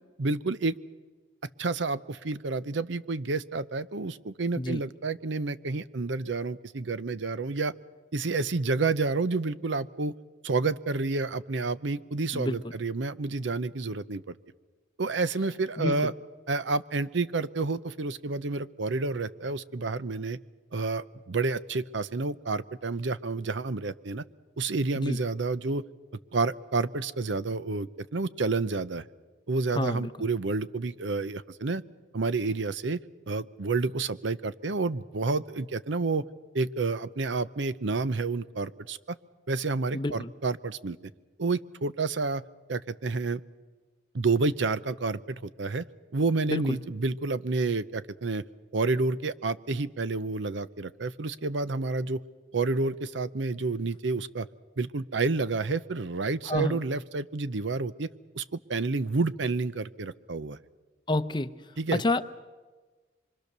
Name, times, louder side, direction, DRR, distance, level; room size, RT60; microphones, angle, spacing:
voice 1, 0.2-0.7 1.6-7.7 8.1-10.1 10.4-14.4 15.0-16.1 16.5-20.4 20.7-24.2 24.6-25.8 26.3-29.0 29.5-31.8 32.1-33.0 33.3-36.2 36.5-39.2 39.5-41.0 41.4-42.4 42.7-43.4 44.1-45.8 46.1-48.4 48.7-52.2 52.5-54.5 54.8-58.1 58.3-60.6 61.8-62.0, right 3 dB, 75° right, 15 dB, 0.7 m, -29 dB
voice 2, 29.7-30.1 39.9-40.3 46.5-46.8 56.5-56.8 61.1-61.6 61.9-62.2, left 2 dB, 25° left, 11 dB, 0.7 m, -28 dB
25.5 x 24.0 x 6.7 m, 1.3 s
head